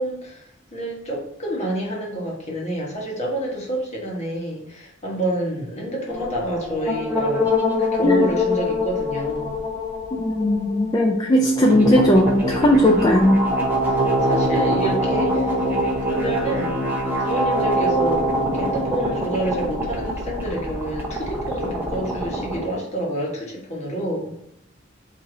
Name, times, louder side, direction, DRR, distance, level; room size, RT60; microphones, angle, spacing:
voice 1, 0.0-7.5 7.8-9.6 12.8-13.0 13.8-15.7 16.0-24.3, right 1 dB, 35° left, -3 dB, 1.2 m, -28 dB
sound 1, 6.1-22.6, equal, 10° right, 0.7 m, -24 dB
voice 2, 10.2-13.4, equal, 20° left, 0 dB, 0.4 m, -17 dB
4.6 x 2.7 x 3.7 m, 0.74 s
head